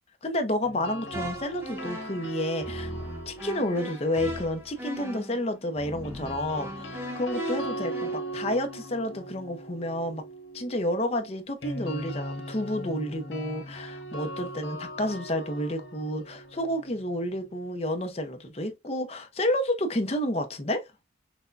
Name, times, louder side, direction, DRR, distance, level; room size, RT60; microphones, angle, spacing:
voice 1, 0.2-2.9 3.3-10.2 10.5-20.8, left 1 dB, 35° left, 0.7 m, -30 dB
sound 1, 0.6-4.8 6.0-17.9, right 1 dB, 75° left, 1.3 m, -39 dB
sound 2, 1.1-8.2, equal, 10° right, 0.9 m, -38 dB
6.0 x 2.2 x 2.5 m
head